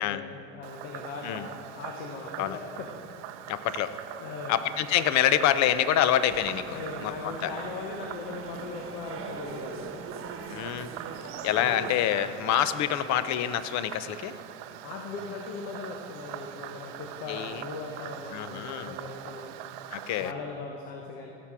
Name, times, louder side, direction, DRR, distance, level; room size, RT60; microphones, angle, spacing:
voice 1, 0.0-2.9 4.2-4.6 6.7-10.0 11.6-11.8 14.8-19.5 20.2-21.3, left 4 dB, 75° left, 1 dB, 1.1 m, -39 dB
Frog, 0.6-20.3, right 12 dB, 75° right, 0.6 m, -43 dB
voice 2, 3.5-3.9 4.5-7.5 10.5-10.9 11.4-14.3 17.3-17.6 18.3-18.9 19.9-20.3, left 11 dB, 50° left, 13 dB, 0.7 m, -26 dB
sound 1, 6.3-12.7, right 5 dB, 35° right, 1.1 m, -42 dB
16.5 x 6.0 x 4.8 m, 2.7 s
supercardioid pair, 90°, 36 cm